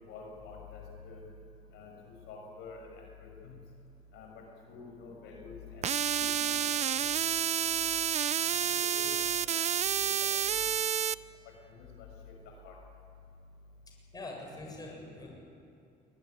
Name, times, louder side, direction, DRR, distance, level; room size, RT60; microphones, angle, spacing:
voice 1, 0.1-1.2 1.7-1.9 2.3-2.8 3.2-3.6 4.1-4.3 4.7-5.8 6.1-6.6 7.0-7.1 8.7-9.1 10.0-10.1 10.4-10.6 11.8-12.1 12.6-12.7, left 4 dB, 90° left, 1 dB, 6.4 m, -47 dB
sound 1, 5.8-11.1, right 9 dB, 40° right, 0.6 m, -29 dB
voice 2, 14.1-15.3, left 2 dB, 25° left, 0 dB, 7.4 m, -43 dB
22.0 x 21.0 x 10.0 m, 2.5 s
cardioid pair, 110°, 17 cm